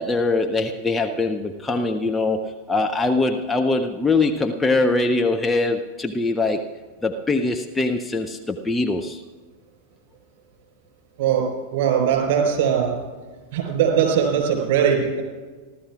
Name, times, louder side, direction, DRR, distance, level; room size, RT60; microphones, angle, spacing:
voice 1, 0.0-6.7 7.0-9.2, left 3 dB, 10° left, 4 dB, 0.7 m, -22 dB
voice 2, 11.2-13.0 13.5-15.2, right 8 dB, 50° right, 1 dB, 4.7 m, -20 dB
29.5 x 13.0 x 2.4 m, 1.4 s
figure-of-eight pair, 90°, 0 cm